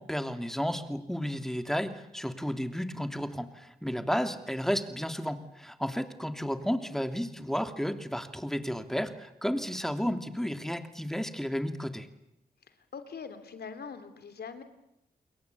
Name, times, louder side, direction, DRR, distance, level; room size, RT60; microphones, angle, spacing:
voice 1, 0.0-12.1, equal, ahead, 8 dB, 2.9 m, -32 dB
voice 2, 12.7-14.6, left 6 dB, 80° left, 9 dB, 3.1 m, -43 dB
29.0 x 22.5 x 8.5 m, 0.86 s
cardioid pair, 60°, 17 cm